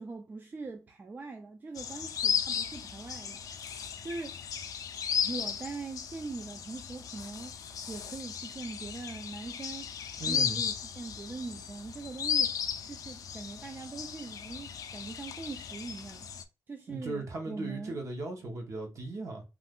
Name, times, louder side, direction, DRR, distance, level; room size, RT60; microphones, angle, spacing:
voice 1, 0.0-3.4 4.0-4.4 5.2-7.5 7.9-16.3 16.7-18.0, right 3 dB, 30° right, 0.4 m, -42 dB
sound 1, 1.7-16.4, left 7 dB, 70° left, 0.4 m, -35 dB
voice 2, 10.2-10.6 16.9-19.4, right 2 dB, 55° right, 0.8 m, -37 dB
2.4 x 2.3 x 3.5 m
wide cardioid pair, 140°, 6 cm